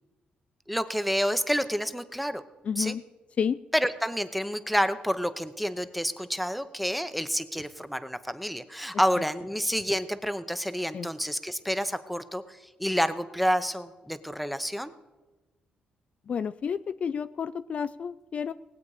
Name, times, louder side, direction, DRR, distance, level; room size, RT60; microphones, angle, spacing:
voice 1, 0.7-2.4 2.8-3.0 3.7-14.9, equal, ahead, 11 dB, 0.8 m, -29 dB
voice 2, 2.7-3.0 3.4-3.6 10.9-11.1 16.3-18.5, left 7 dB, 45° left, 13 dB, 0.3 m, -30 dB
19.0 x 8.3 x 4.9 m, 1.2 s
cardioid pair, 105°, 3 cm